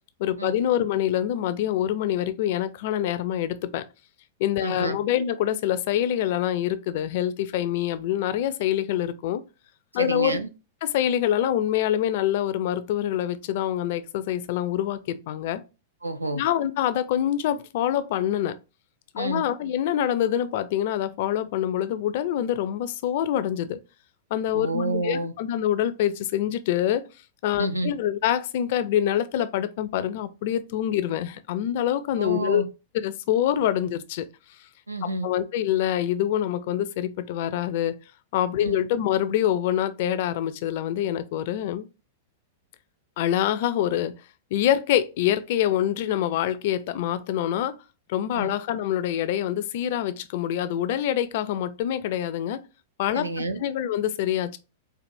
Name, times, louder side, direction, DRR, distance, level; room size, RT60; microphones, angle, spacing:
voice 1, 0.2-3.8 4.4-9.4 9.9-10.4 10.8-15.6 16.3-18.6 19.1-23.8 24.3-27.0 27.4-32.6 32.9-34.3 35.2-38.0 38.3-41.9 43.2-44.1 44.5-47.7 48.1-52.6 53.0-53.3 53.6-54.6, left 11 dB, 55° left, 0.4 m, -25 dB
voice 2, 4.6-5.0 9.9-10.5 16.0-16.4 19.2-19.4 24.5-25.3 27.6-27.9 32.2-32.7 34.9-35.3 38.6-38.8 48.3-48.5 53.1-53.6, right 2 dB, 85° right, 0.5 m, -29 dB
4.6 x 2.4 x 2.5 m
figure-of-eight pair, 95°, 0 cm